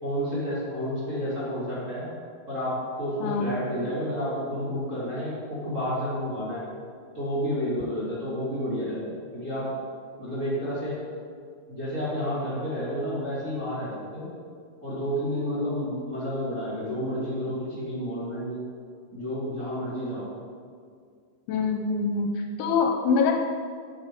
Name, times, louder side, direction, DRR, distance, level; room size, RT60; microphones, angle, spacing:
voice 1, 0.0-2.1 2.5-6.6 7.1-9.7 10.2-11.0 11.7-14.3 14.8-18.6 19.1-20.3, equal, 25° right, -10 dB, 2.2 m, -30 dB
voice 2, 3.2-3.6 21.5-22.3 22.6-23.4, left 5 dB, 80° left, 3 dB, 2.6 m, -24 dB
9.0 x 8.7 x 4.9 m, 2.1 s
omnidirectional pair, 4.8 m